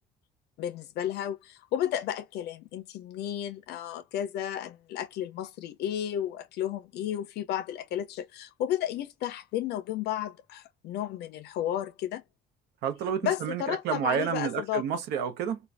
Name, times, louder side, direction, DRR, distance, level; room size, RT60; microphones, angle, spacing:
voice 1, 0.6-12.2 13.2-14.8, left 11 dB, 75° left, 0.4 m, -33 dB
voice 2, 12.8-15.6, right 8 dB, 80° right, 0.6 m, -30 dB
2.4 x 2.2 x 3.3 m
cardioid pair, 110°, 17 cm